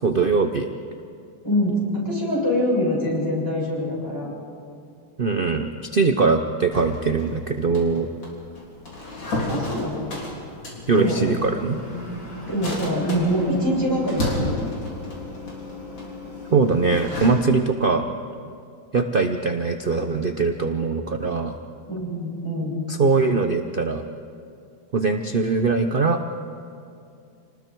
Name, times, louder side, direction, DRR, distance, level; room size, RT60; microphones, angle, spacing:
voice 1, 0.0-0.7 5.2-8.1 10.9-11.8 16.5-18.1 18.9-21.6 22.9-24.0 24.9-26.2, right 4 dB, 80° right, 6 dB, 0.4 m, -21 dB
voice 2, 1.4-4.3 9.5-10.0 10.9-11.2 12.5-14.6 21.9-22.8, equal, 10° left, -5 dB, 7.1 m, -24 dB
sound 1, 6.7-17.3, left 1 dB, 75° left, 4.4 m, -32 dB
28.5 x 20.0 x 4.6 m, 2.4 s
omnidirectional pair, 2.1 m